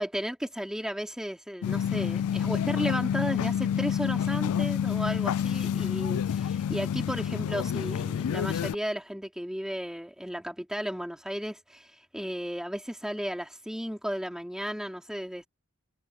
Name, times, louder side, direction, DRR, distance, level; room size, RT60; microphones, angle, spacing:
voice 1, 0.0-15.5, equal, 5° right, 3.4 m, -34 dB
sound 1, 1.6-8.7, left 8 dB, 85° left, 0.3 m, -28 dB
head